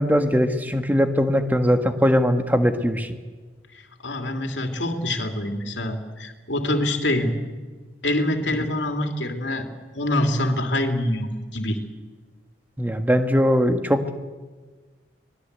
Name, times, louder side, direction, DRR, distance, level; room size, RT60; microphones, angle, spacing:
voice 1, 0.0-3.2 12.8-14.1, equal, 10° right, 7 dB, 1.5 m, -20 dB
voice 2, 3.7-7.4 8.0-9.7 9.9-11.8, left 1 dB, 75° left, 3 dB, 2.9 m, -25 dB
25.0 x 20.0 x 8.2 m, 1.4 s
head